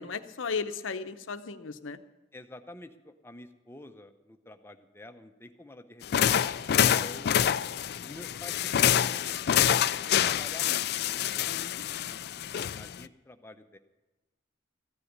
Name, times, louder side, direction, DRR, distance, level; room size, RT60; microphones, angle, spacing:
voice 1, 0.0-2.0 11.2-11.9, left 5 dB, 85° left, 10 dB, 0.8 m, -36 dB
voice 2, 2.3-6.5 6.8-7.4 8.0-9.2 9.5-11.7 11.9-13.8, left 1 dB, 10° left, 7 dB, 0.7 m, -48 dB
sound 1, 6.0-13.0, left 10 dB, 55° left, 0.3 m, -27 dB
15.0 x 7.0 x 9.5 m, 1.1 s
head